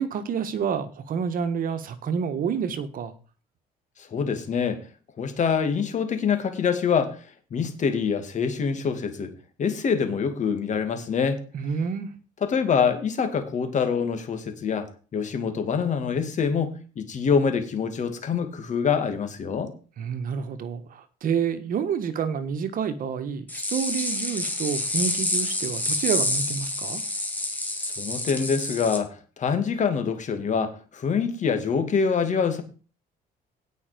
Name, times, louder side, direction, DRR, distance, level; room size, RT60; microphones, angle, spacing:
voice 1, 0.0-3.1 11.5-12.1 20.0-27.0, right 7 dB, 55° right, 11 dB, 1.6 m, -28 dB
voice 2, 4.0-4.8 5.2-7.2 7.5-9.3 9.6-11.4 12.4-19.7 27.8-32.6, left 6 dB, 45° left, 8 dB, 2.4 m, -25 dB
sound 1, 23.5-29.0, left 1 dB, 10° left, 2.8 m, -28 dB
17.0 x 5.8 x 5.2 m, 0.37 s
cardioid pair, 110°, 17 cm